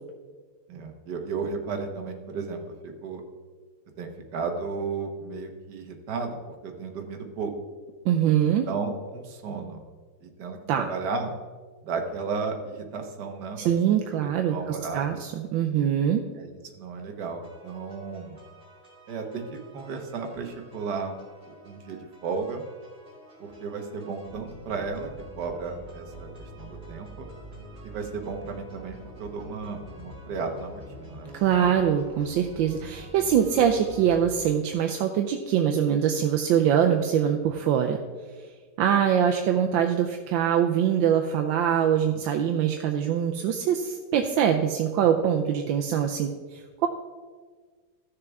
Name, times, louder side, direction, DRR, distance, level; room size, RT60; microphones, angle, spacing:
voice 1, 0.7-3.2 4.0-7.5 8.4-9.8 10.2-11.3 11.9-13.6 14.1-15.2 16.3-18.4 19.1-21.2 21.5-22.6 23.4-25.1 25.4-27.3 27.8-31.3 31.6-31.7 42.1-42.2, right 4 dB, 55° right, 3 dB, 1.5 m, -34 dB
voice 2, 8.0-8.7 10.7-10.8 13.6-16.2 31.3-38.0 38.8-46.9, right 9 dB, 75° right, 4 dB, 1.2 m, -23 dB
sound 1, 17.4-34.4, equal, 30° right, 2.3 m, -46 dB
14.5 x 6.6 x 3.5 m, 1.5 s
omnidirectional pair, 2.3 m